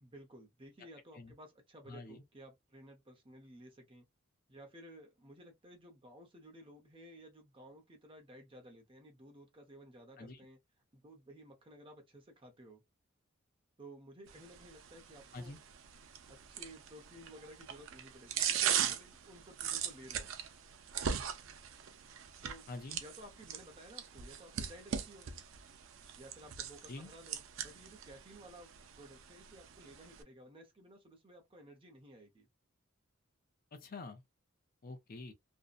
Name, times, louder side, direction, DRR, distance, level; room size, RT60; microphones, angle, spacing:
voice 1, 0.0-4.0 4.5-10.6 10.9-12.8 13.8-15.5 16.3-20.3 22.4-22.7 23.0-25.3 26.2-32.5, right 1 dB, 25° right, 0.7 m, -55 dB
voice 2, 1.9-2.2 10.2-10.4 15.3-15.6 22.7-23.0 26.9-27.1 33.7-34.2 34.8-35.3, left 3 dB, 45° left, 0.5 m, -46 dB
sound 1, 14.3-30.2, right 8 dB, 75° right, 0.5 m, -40 dB
2.6 x 2.1 x 2.3 m
head